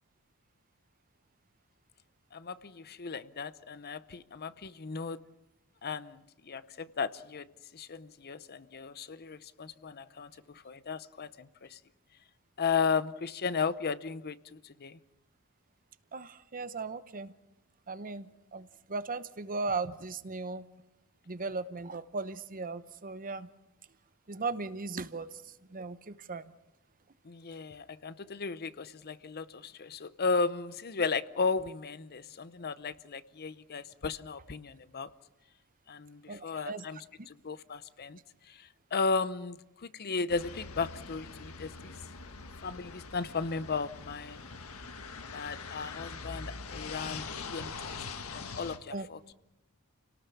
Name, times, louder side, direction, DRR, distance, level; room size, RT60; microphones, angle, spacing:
voice 1, 2.3-5.2 5.8-7.5 7.7-11.8 12.6-15.0 27.2-35.1 35.9-37.0 37.3-38.2 38.5-41.9 42.6-44.4 45.3-48.0 48.3-49.2, left 5 dB, 45° left, 0.7 m, -35 dB
voice 2, 16.1-17.3 17.9-20.6 21.3-23.5 24.3-25.4 25.7-26.5 36.3-36.8 37.2-37.3 48.9-49.1, right 3 dB, 40° right, 0.9 m, -37 dB
sound 1, 40.3-48.8, left 4 dB, 70° left, 1.6 m, -43 dB
29.5 x 18.5 x 7.1 m
head